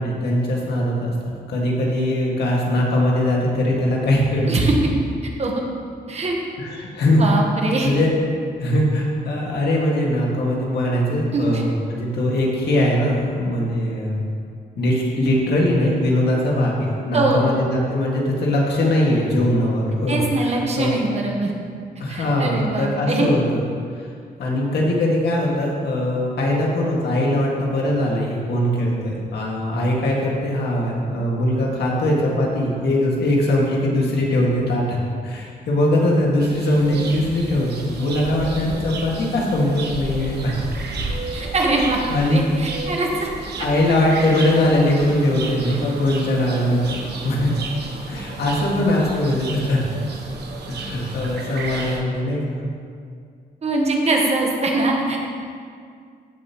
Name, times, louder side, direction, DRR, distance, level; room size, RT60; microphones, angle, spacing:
voice 1, 0.0-4.6 6.6-7.2 7.8-8.1 8.6-14.2 14.8-20.9 22.0-23.6 23.9-24.0 24.4-40.6 42.1-42.4 43.6-47.5 48.1-49.8 50.7-52.6, left 1 dB, 80° left, -3 dB, 2.0 m, -21 dB
voice 2, 7.1-8.0 11.3-11.6 17.1-17.5 20.1-21.5 22.1-23.3 41.3-42.0 42.3-43.3 43.6-43.7 53.6-55.2, right 2 dB, 40° right, 0 dB, 1.2 m, -22 dB
sound 1, 36.4-52.0, right 3 dB, 80° right, 1.2 m, -32 dB
15.0 x 7.0 x 3.1 m, 2.2 s
wide cardioid pair, 150°, 17 cm